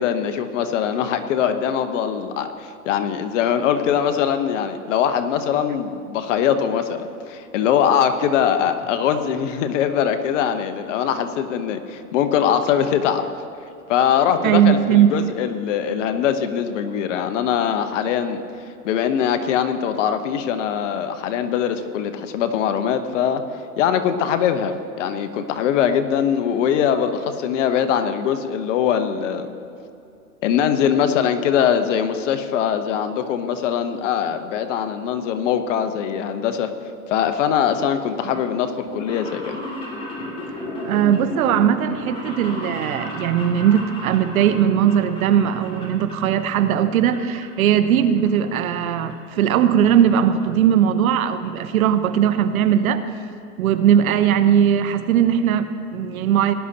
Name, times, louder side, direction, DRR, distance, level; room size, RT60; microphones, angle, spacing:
voice 1, 0.0-13.3 13.9-18.4 18.8-23.4 23.8-29.5 30.4-36.7 37.1-39.6, left 8 dB, 55° left, 9 dB, 1.0 m, -22 dB
voice 2, 14.4-15.1 38.2-38.3 40.8-53.0 53.6-56.5, right 9 dB, 65° right, 11 dB, 0.9 m, -19 dB
sound 1, 38.9-46.5 46.7-47.4 47.8-48.8 49.1-49.2 50.1-50.2 50.4-50.5 50.8-50.9 51.2-51.4 51.8-51.9 52.1-52.2, left 1 dB, 10° left, 2.8 m, -34 dB
18.5 x 11.0 x 2.9 m, 2.7 s
hypercardioid pair, 130°, 45 cm